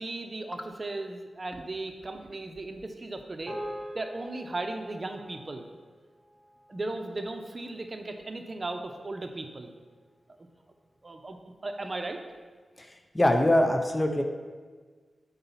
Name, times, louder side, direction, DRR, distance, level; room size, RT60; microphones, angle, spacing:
voice 1, 0.0-3.6 3.9-5.7 6.7-9.7 11.0-11.4 11.6-12.2, right 2 dB, 35° right, 5 dB, 0.7 m, -36 dB
sound 1, 3.5-8.0, equal, 20° right, 2.1 m, -44 dB
voice 2, 13.1-14.2, left 1 dB, 15° left, 5 dB, 0.6 m, -23 dB
8.4 x 4.0 x 5.6 m, 1.5 s
wide cardioid pair, 110°, 0 cm